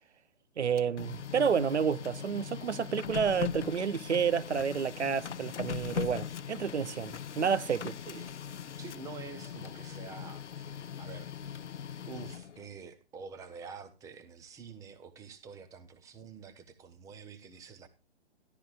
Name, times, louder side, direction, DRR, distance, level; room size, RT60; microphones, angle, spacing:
Printer, 0.6-12.7, left 8 dB, 80° left, 0.5 m, -40 dB
voice 1, 0.6-8.0, right 7 dB, 75° right, 0.8 m, -30 dB
voice 2, 8.1-8.4 8.8-11.3 12.1-17.9, right 5 dB, 10° right, 0.8 m, -47 dB
13.0 x 11.5 x 2.5 m
figure-of-eight pair, 130°, 34 cm